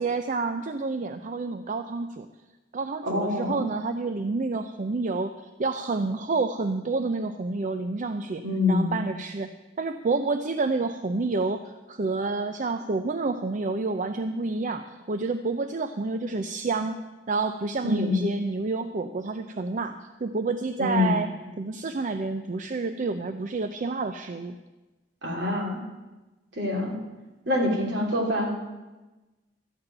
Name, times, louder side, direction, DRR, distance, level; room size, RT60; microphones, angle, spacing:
voice 1, 0.0-2.3 2.7-5.3 5.6-9.5 9.8-17.0 17.3-20.0 20.2-21.3 21.6-24.6, right 3 dB, 45° right, 8 dB, 0.5 m, -29 dB
voice 2, 3.0-3.6 8.4-9.0 17.8-18.2 20.8-21.2 25.2-25.8 26.5-26.9 27.5-28.5, left 2 dB, 70° right, -1 dB, 3.0 m, -25 dB
13.0 x 5.9 x 8.9 m, 1.1 s
head